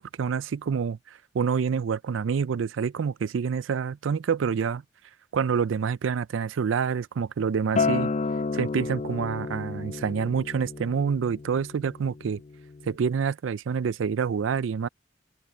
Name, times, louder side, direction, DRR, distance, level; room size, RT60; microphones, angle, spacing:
voice 1, 0.0-4.8 5.3-8.1 8.5-12.4 12.8-14.9, right 6 dB, 80° right, 0.4 m, -27 dB
Acoustic guitar, 7.8-13.0, left 4 dB, 35° left, 0.4 m, -31 dB
open air
head